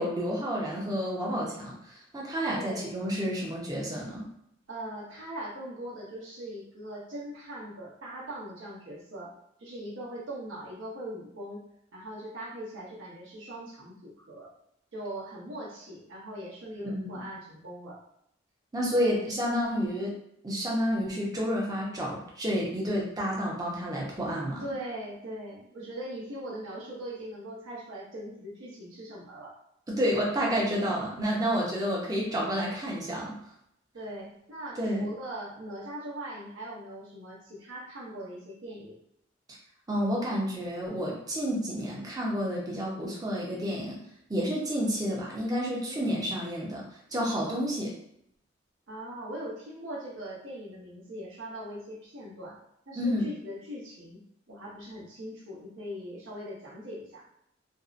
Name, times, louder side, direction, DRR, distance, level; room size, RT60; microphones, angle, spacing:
voice 1, 0.0-4.3 16.8-17.2 18.7-20.1 20.4-24.6 29.9-33.4 34.8-35.1 39.9-44.0 44.3-46.9 47.1-47.9 53.0-53.2, equal, 20° right, -3 dB, 0.6 m, -30 dB
voice 2, 2.5-2.9 4.7-9.3 9.6-11.6 11.9-14.5 14.9-18.0 24.6-29.5 31.6-31.8 33.9-39.0 45.9-46.1 48.9-52.6 52.9-54.2 54.5-57.2, right 1 dB, 80° right, -5 dB, 0.8 m, -40 dB
2.6 x 2.0 x 2.4 m, 0.75 s
head